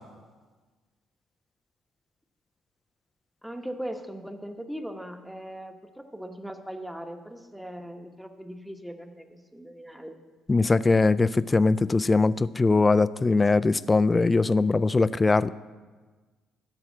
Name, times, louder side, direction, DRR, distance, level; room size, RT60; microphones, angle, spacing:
voice 1, 3.4-10.2, equal, 5° right, 6 dB, 1.0 m, -39 dB
voice 2, 10.5-15.5, left 3 dB, 20° left, 16 dB, 0.3 m, -21 dB
13.5 x 4.9 x 8.4 m, 1.4 s
cardioid pair, 90°, 0 cm